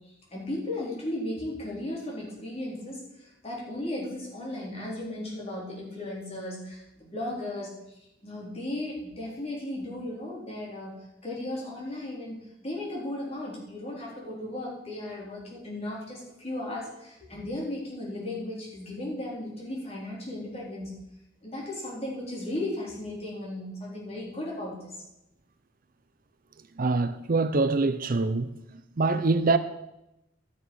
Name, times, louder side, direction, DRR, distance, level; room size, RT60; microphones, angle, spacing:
voice 1, 0.3-7.7 8.2-11.0 11.2-20.9 21.4-24.9, left 1 dB, 35° left, 4.0 m, -36 dB
voice 2, 26.8-28.5 29.0-29.6, right 3 dB, 50° right, 0.6 m, -24 dB
12.5 x 7.0 x 6.3 m
head